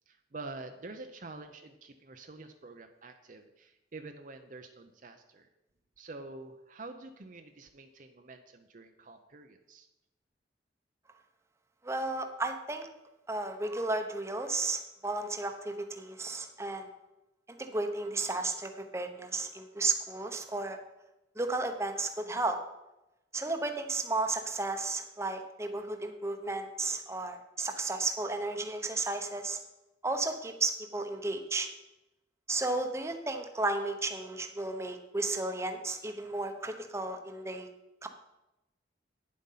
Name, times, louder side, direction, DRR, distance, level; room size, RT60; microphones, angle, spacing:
voice 1, 0.1-5.5 6.0-9.9, right 3 dB, 45° right, 6 dB, 0.6 m, -47 dB
voice 2, 11.8-12.9 13.3-16.9 17.6-20.8 21.4-22.6 23.3-29.6 30.0-31.7 32.5-37.7 38.0-38.1, right 2 dB, 15° right, 5 dB, 0.8 m, -33 dB
9.6 x 7.5 x 5.6 m, 0.95 s
head